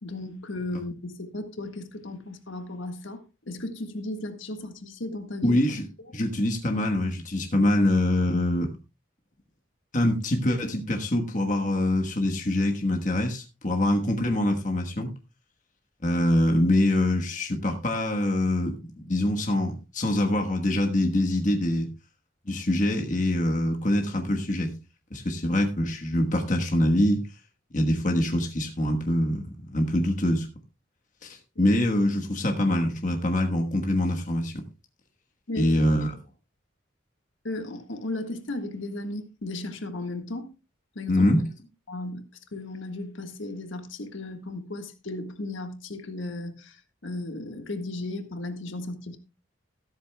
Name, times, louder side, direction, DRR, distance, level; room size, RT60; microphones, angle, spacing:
voice 1, 0.0-5.6 31.5-31.7 35.5-35.9 37.4-40.5 40.9-41.3 41.9-42.2 42.5-49.2, left 2 dB, 70° left, 1.6 m, -35 dB
voice 2, 5.4-5.9 6.1-8.7 9.9-15.1 16.0-21.9 22.5-24.7 25.1-27.2 27.7-30.5 31.2-34.6 35.6-36.1 41.1-41.5, left 1 dB, 40° left, 1.3 m, -24 dB
14.0 x 13.0 x 2.3 m
head